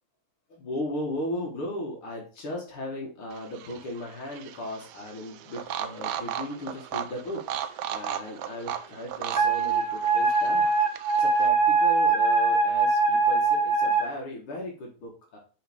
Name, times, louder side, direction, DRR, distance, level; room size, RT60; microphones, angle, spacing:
voice 1, 0.5-10.7 11.2-15.4, left 1 dB, 75° left, -1 dB, 2.3 m, -36 dB
sound 1, 3.3-11.5, right 9 dB, 80° right, 0.9 m, -36 dB
Wind instrument woodwind instrument, 9.4-14.1, right 4 dB, 30° right, 2.4 m, -22 dB
5.6 x 5.3 x 3.4 m, 0.38 s
omnidirectional pair, 2.4 m